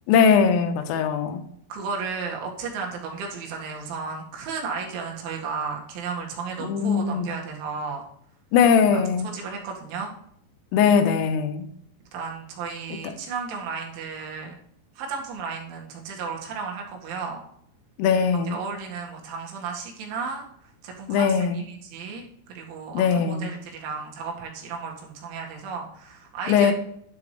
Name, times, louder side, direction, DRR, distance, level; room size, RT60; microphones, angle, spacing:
voice 1, 0.1-1.4 6.7-7.3 8.5-9.3 10.7-11.7 18.0-18.6 21.1-21.6 23.0-23.4 26.5-26.7, left 6 dB, 85° left, 3.8 m, -20 dB
voice 2, 1.7-8.0 8.9-10.1 12.1-14.5 15.0-17.4 18.5-26.7, right 5 dB, 70° right, 4.3 m, -34 dB
12.0 x 12.0 x 3.3 m
omnidirectional pair, 5.8 m